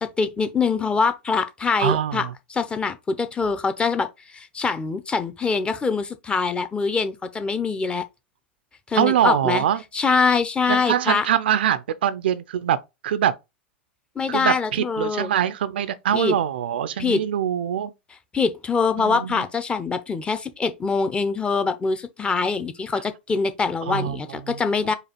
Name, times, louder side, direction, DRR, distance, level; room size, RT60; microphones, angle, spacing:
voice 1, 0.0-8.0 8.9-9.6 9.9-11.3 14.2-15.3 16.1-16.4 17.0-17.2 18.3-24.9, left 4 dB, 15° left, 0.7 m, -24 dB
voice 2, 1.8-2.3 9.0-9.8 10.7-13.4 14.3-17.9 19.0-19.4 23.9-24.6, right 10 dB, 70° right, 0.4 m, -23 dB
4.9 x 2.4 x 4.4 m
hypercardioid pair, 95°, 6 cm